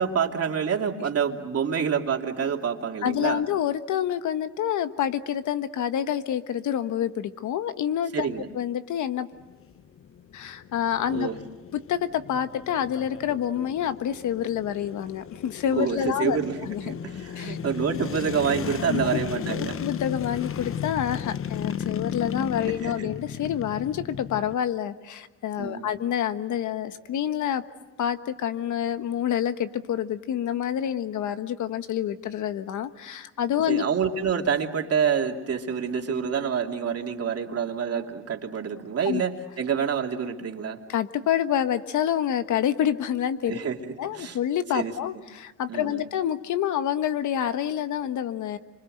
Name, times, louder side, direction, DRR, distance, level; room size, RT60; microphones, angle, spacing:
voice 1, 0.0-3.4 8.1-8.5 11.1-11.4 15.8-16.6 16.8-19.7 22.8-23.1 25.6-25.9 33.7-40.8 43.5-43.8 44.1-44.4 44.7-44.9 45.7-46.0, right 7 dB, 50° right, 2 dB, 2.9 m, -27 dB
voice 2, 3.0-8.3 8.5-9.3 10.3-11.3 11.7-17.0 17.3-17.6 18.9-19.2 19.5-27.6 28.0-33.8 39.0-39.2 40.9-43.6 44.0-48.6, left 10 dB, 75° left, 10 dB, 1.4 m, -27 dB
sound 1, 9.3-24.5, left 8 dB, 45° left, 0.9 m, -35 dB
28.5 x 25.5 x 7.9 m, 1.2 s
cardioid pair, 90°, 30 cm